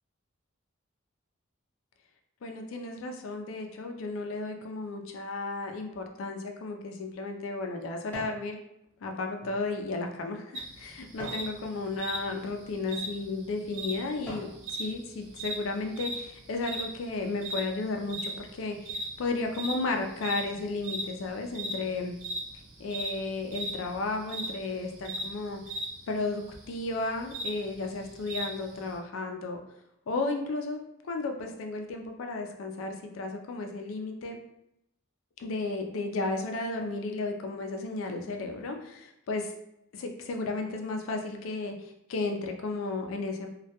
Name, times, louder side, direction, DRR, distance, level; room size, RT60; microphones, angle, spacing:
voice 1, 2.4-8.6 9.0-22.1 22.8-25.6 26.1-29.6 30.1-34.4 35.4-39.5 39.9-43.5, left 3 dB, 75° left, 4 dB, 0.4 m, -34 dB
sound 1, 6.6-8.5 8.9-11.5 12.1-12.4 13.1-13.2 13.7-14.6 15.1-15.2, equal, 10° left, 0.6 m, -46 dB
sound 2, 10.5-29.0, right 1 dB, 75° right, 0.5 m, -39 dB
2.2 x 2.1 x 2.8 m, 0.82 s
head